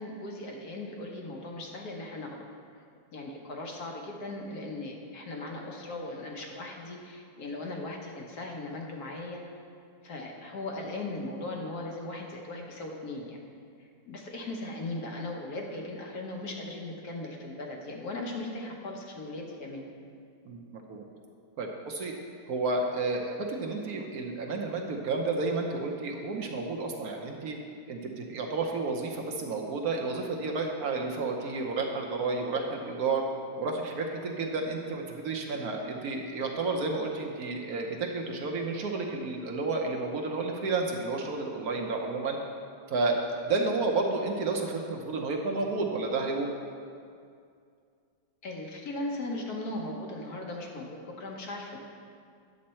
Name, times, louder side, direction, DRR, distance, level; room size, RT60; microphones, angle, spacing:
voice 1, 0.0-2.5 3.1-9.4 10.0-13.4 13.8-19.9 48.4-51.8, left 2 dB, 60° left, 0 dB, 1.4 m, -38 dB
voice 2, 20.5-21.0 21.6-22.1 22.5-27.6 27.9-33.2 33.6-42.4 42.9-46.5, right 3 dB, 60° right, 1 dB, 1.1 m, -31 dB
9.5 x 6.5 x 4.3 m, 2.3 s
omnidirectional pair, 2.0 m